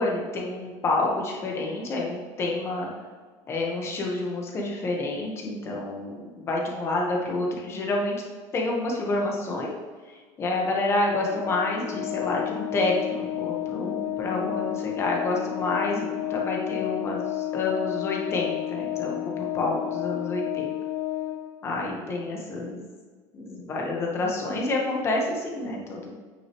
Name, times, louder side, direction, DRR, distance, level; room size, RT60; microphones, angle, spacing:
voice 1, 0.0-2.9 3.5-8.2 8.5-9.7 10.1-20.7 21.6-22.8 23.3-26.1, left 2 dB, 25° left, -1 dB, 1.2 m, -28 dB
Organ, 11.3-21.9, left 14 dB, 60° left, 0.4 m, -31 dB
9.3 x 6.3 x 3.0 m, 1.5 s
cardioid pair, 170°, 11 cm